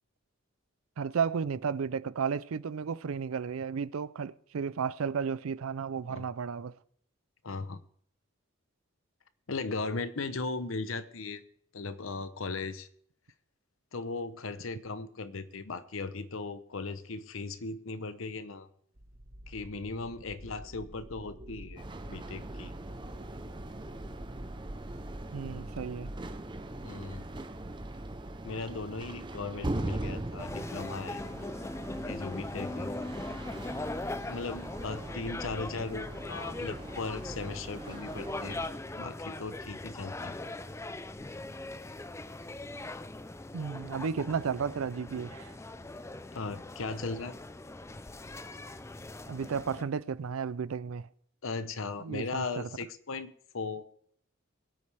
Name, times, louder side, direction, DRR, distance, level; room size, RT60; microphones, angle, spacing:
voice 1, 1.0-6.7 25.3-26.1 43.5-45.5 49.3-51.1 52.0-52.6, right 6 dB, 85° right, 0.5 m, -33 dB
voice 2, 7.4-7.8 9.5-11.4 11.7-12.9 13.9-18.7 19.5-22.7 26.8-27.2 28.4-31.2 32.0-32.9 34.3-38.6 39.0-40.4 46.3-47.4 51.4-53.9, left 3 dB, 75° left, 0.8 m, -38 dB
sound 1, 19.0-29.6, right 1 dB, 45° right, 1.6 m, -48 dB
sound 2, 21.8-38.7, right 1 dB, 20° right, 0.7 m, -41 dB
sound 3, 30.4-49.8, left 2 dB, 15° left, 0.4 m, -40 dB
22.5 x 8.5 x 3.4 m
head